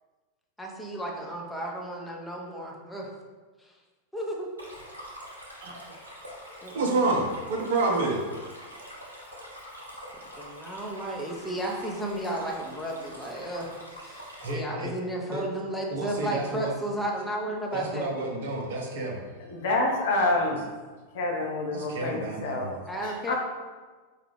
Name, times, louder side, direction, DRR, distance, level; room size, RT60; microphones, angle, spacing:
voice 1, 0.6-3.1 3.6-3.7 4.1-4.5 6.6-6.9 10.1-18.1 21.9-22.2 22.9-23.3, right 1 dB, 5° left, -2 dB, 0.7 m, -34 dB
Stream, 4.6-14.5, equal, 85° right, 0.9 m, -45 dB
voice 2, 5.6-5.9 6.7-8.2 14.4-14.9 15.3-15.4 15.9-16.8 17.7-19.2 21.7-22.8, right 2 dB, 55° right, 0 dB, 0.7 m, -29 dB
voice 3, 19.5-20.6 21.1-22.7 23.0-23.3, left 2 dB, 55° left, 0 dB, 0.7 m, -27 dB
4.8 x 2.3 x 3.2 m, 1.4 s
figure-of-eight pair, 90°, 0 cm